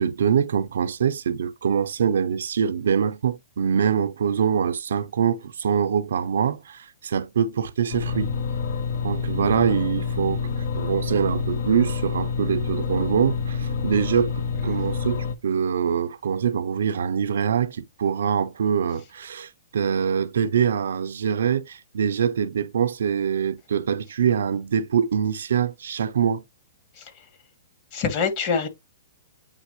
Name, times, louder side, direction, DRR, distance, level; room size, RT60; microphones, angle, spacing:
voice 1, 0.0-8.3 9.0-10.4 10.7-26.4, right 7 dB, 80° right, 0.6 m, -24 dB
sound 1, 7.9-15.3, left 5 dB, 60° left, 1.0 m, -27 dB
voice 2, 27.9-28.7, left 5 dB, 40° left, 2.3 m, -25 dB
8.8 x 4.0 x 3.0 m
hypercardioid pair, 145°, 0 cm